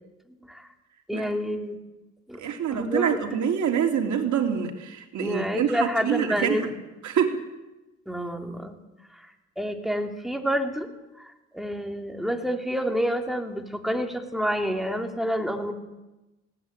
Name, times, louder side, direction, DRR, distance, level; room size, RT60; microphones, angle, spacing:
voice 1, 1.1-1.8 2.3-2.4 2.7-3.2 5.2-6.7 8.1-8.7 9.1-9.3 9.6-10.9 11.2-15.7, equal, ahead, 4 dB, 3.0 m, -28 dB
voice 2, 2.4-6.7 7.0-7.4, right 8 dB, 70° right, 3 dB, 3.4 m, -26 dB
19.0 x 17.5 x 10.0 m, 1.0 s
cardioid pair, 90°, 30 cm